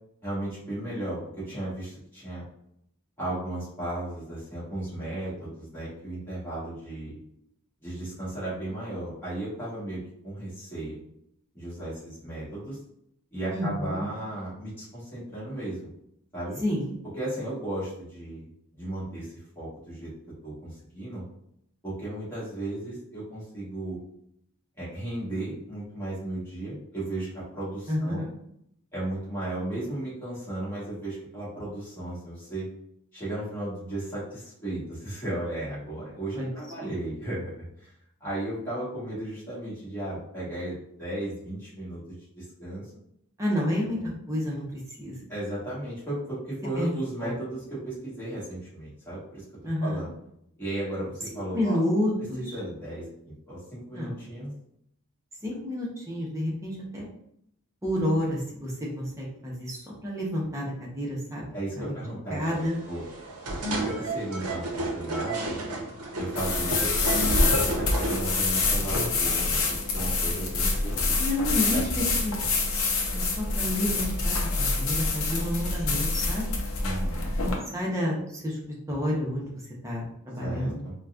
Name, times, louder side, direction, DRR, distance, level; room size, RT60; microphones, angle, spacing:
voice 1, 0.2-2.4 3.2-7.2 7.8-11.0 11.5-12.8 13.3-15.9 16.3-16.6 17.2-20.1 20.4-21.2 21.8-24.0 24.8-28.3 28.9-32.7 33.1-37.9 38.2-42.9 45.3-49.4 49.8-50.1 50.6-51.8 52.4-54.5 61.5-63.0 63.5-65.6 66.2-69.6 69.9-71.2 71.6-72.4 76.8-77.3 80.4-80.9, right 1 dB, 10° left, -10 dB, 1.4 m, -35 dB
voice 2, 13.5-14.0 16.6-16.9 27.9-28.3 36.4-36.9 43.4-44.0 44.3-45.1 46.8-46.9 47.2-47.3 49.6-50.1 51.5-52.4 54.0-54.2 55.4-57.1 57.8-61.4 61.7-61.9 62.3-62.8 71.2-72.3 73.2-76.4 77.7-78.6 78.9-79.5 79.8-80.8, left 1 dB, 15° right, -4 dB, 0.7 m, -29 dB
sound 1, 62.4-69.3, right 2 dB, 80° right, 0.7 m, -33 dB
sound 2, 66.4-77.6, left 3 dB, 65° left, 0.6 m, -26 dB
4.0 x 2.2 x 2.3 m, 0.75 s
head